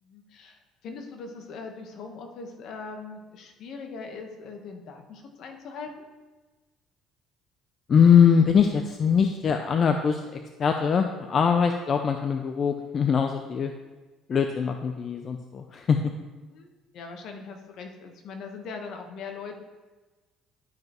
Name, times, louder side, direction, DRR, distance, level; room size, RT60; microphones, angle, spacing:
voice 1, 0.0-6.0 16.4-19.6, left 4 dB, 65° left, 4 dB, 1.1 m, -41 dB
voice 2, 7.9-10.2 10.6-13.7 14.3-16.0, left 7 dB, 40° left, 5 dB, 0.5 m, -22 dB
11.5 x 5.3 x 3.0 m, 1.2 s
cardioid pair, 105°, 0 cm